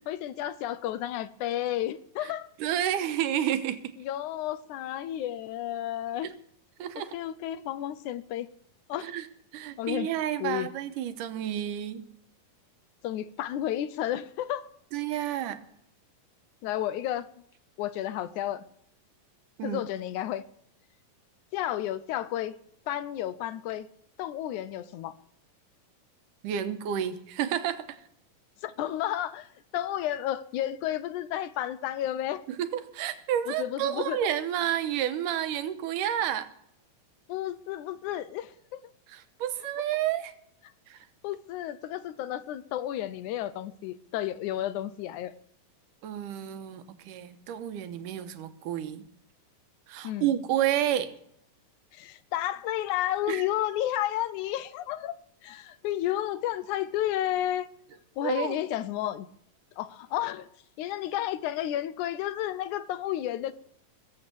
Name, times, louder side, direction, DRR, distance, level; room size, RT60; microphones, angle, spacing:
voice 1, 0.1-2.5 4.0-6.3 7.0-8.5 8.9-9.1 9.8-10.1 10.4-10.7 13.0-14.7 16.6-17.3 17.8-18.7 19.6-20.5 21.5-22.6 22.9-23.9 24.2-25.1 28.6-32.4 33.5-34.2 37.3-38.8 41.2-45.3 50.0-50.3 51.9-55.1 55.4-57.7 58.2-59.3 59.8-60.5 60.8-63.5, left 12 dB, 75° left, 1.9 m, -32 dB
voice 2, 2.6-3.9 6.2-6.3 6.8-7.2 9.0-9.3 9.5-12.0 14.9-15.6 19.6-19.8 26.4-28.1 32.5-36.5 39.1-40.3 40.9-41.1 46.0-49.0 49.9-51.1 53.3-53.5 58.2-58.6, right 11 dB, 75° right, 2.5 m, -30 dB
20.5 x 7.8 x 6.9 m
omnidirectional pair, 3.9 m